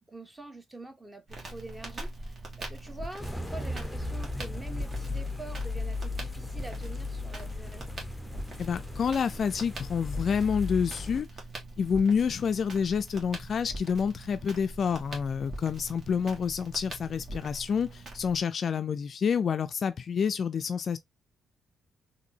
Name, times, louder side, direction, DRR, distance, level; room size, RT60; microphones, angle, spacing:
voice 1, 0.1-7.9, right 2 dB, 15° right, 1.0 m, -45 dB
Crackle, 1.3-18.4, right 2 dB, 45° right, 1.6 m, -42 dB
sound 1, 3.2-11.2, left 3 dB, 5° left, 0.7 m, -36 dB
voice 2, 8.6-11.3 11.8-21.0, left 6 dB, 50° left, 0.3 m, -28 dB
4.0 x 2.7 x 2.7 m
cardioid pair, 90°, 0 cm